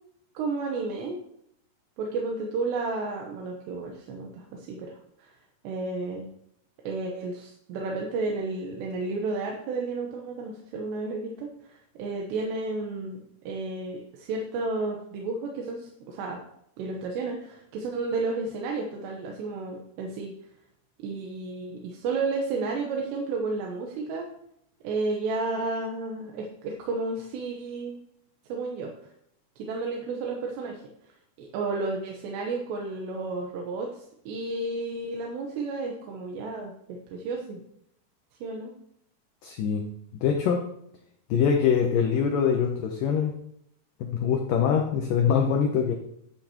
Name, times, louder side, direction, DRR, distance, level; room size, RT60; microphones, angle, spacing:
voice 1, 0.3-1.2 2.0-5.3 5.6-6.3 6.8-16.4 16.8-20.3 21.0-24.3 24.8-28.0 28.5-28.9 29.6-30.8 31.4-37.6 38.4-38.7, right 3 dB, 90° right, 0 dB, 3.2 m, -32 dB
voice 2, 39.4-39.9 40.2-40.6 41.3-43.3 44.0-46.0, left 7 dB, 80° left, 3 dB, 2.0 m, -23 dB
11.5 x 8.7 x 3.0 m, 0.74 s
omnidirectional pair, 4.9 m